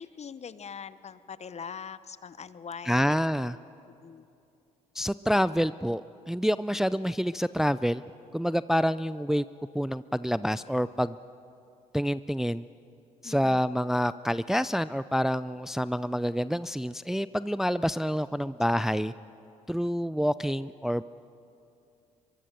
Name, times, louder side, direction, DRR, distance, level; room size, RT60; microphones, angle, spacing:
voice 1, 0.0-3.0 4.0-4.3 13.2-13.6, left 6 dB, 40° left, 15 dB, 0.9 m, -42 dB
voice 2, 2.8-3.6 4.9-8.0 8.3-9.4 9.7-11.2 11.9-12.7 13.2-19.1 19.7-21.0, equal, 5° right, 16 dB, 0.4 m, -27 dB
23.5 x 23.5 x 6.8 m, 2.7 s
hypercardioid pair, 50°, 17 cm